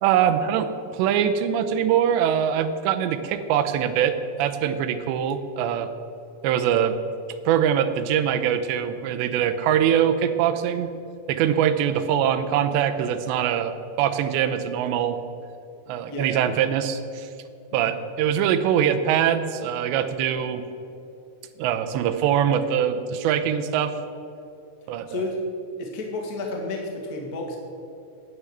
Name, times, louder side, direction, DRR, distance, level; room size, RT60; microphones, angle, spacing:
voice 1, 0.0-5.9 6.4-6.9 7.5-10.9 11.3-13.7 14.0-15.2 15.9-17.3 17.7-20.6 21.6-23.9 24.9-25.2, right 9 dB, 90° right, 9 dB, 3.0 m, -23 dB
voice 2, 16.0-16.4 17.7-17.9 25.1-25.4 25.8-27.6, left 2 dB, 45° left, 1 dB, 1.1 m, -31 dB
10.5 x 9.9 x 7.9 m, 2.7 s
omnidirectional pair, 5.0 m